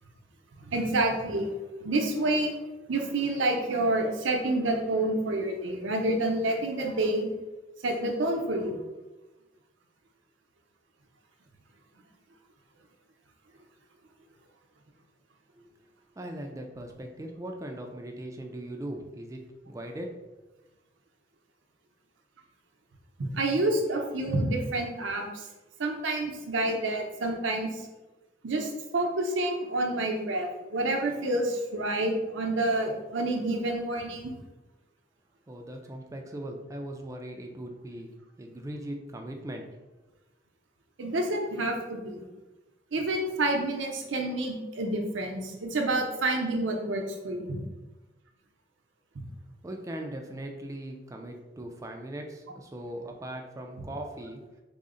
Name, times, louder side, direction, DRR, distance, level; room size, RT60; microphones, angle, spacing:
voice 1, 0.7-1.5 1.8-2.5 2.9-7.3 7.8-8.8 23.2-25.5 25.8-27.9 28.4-34.3 41.0-42.2 42.9-47.6, right 2 dB, 85° right, 2 dB, 0.6 m, -28 dB
voice 2, 16.2-20.2 35.5-38.1 38.4-39.7 49.6-54.4, right 1 dB, 15° right, 3 dB, 0.3 m, -39 dB
3.8 x 2.1 x 3.7 m, 1.1 s
head